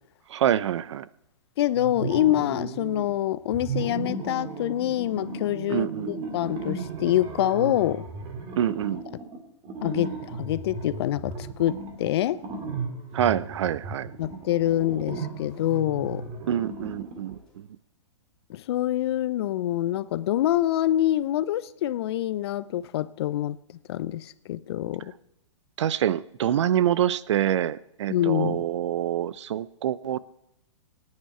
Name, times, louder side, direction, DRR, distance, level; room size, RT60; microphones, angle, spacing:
voice 1, 0.3-1.1 5.7-6.1 8.6-9.0 13.1-14.1 16.5-17.7 25.8-30.2, right 10 dB, 65° right, 0.6 m, -26 dB
voice 2, 1.6-8.0 9.8-12.4 14.2-16.3 18.5-23.6 23.9-25.1 28.1-28.7, left 13 dB, 55° left, 0.7 m, -26 dB
sound 1, 1.8-3.1 3.5-17.4, right 4 dB, 30° right, 2.3 m, -36 dB
sound 2, 11.6-17.6, left 4 dB, 5° left, 4.1 m, -54 dB
19.0 x 9.7 x 4.4 m
hypercardioid pair, 125°, 16 cm